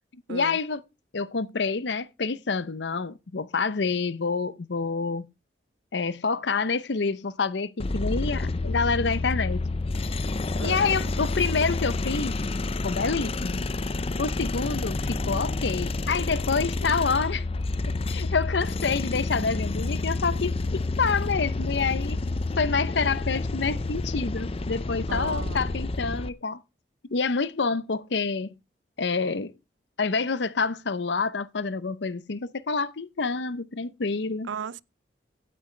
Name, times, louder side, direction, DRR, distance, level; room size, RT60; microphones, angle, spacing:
voice 1, 0.3-0.8 1.1-5.3 5.9-9.6 10.6-12.3 12.8-13.6 14.2-17.4 18.1-22.2 22.6-26.6 27.1-28.5 29.0-29.5 30.0-34.5, left 4 dB, 70° left, 0.7 m, -27 dB
sound 1, 7.8-26.3, left 2 dB, 30° left, 0.5 m, -29 dB
voice 2, 10.6-11.1 25.1-25.7 34.5-34.8, right 6 dB, 90° right, 0.5 m, -36 dB
16.5 x 8.7 x 3.3 m
head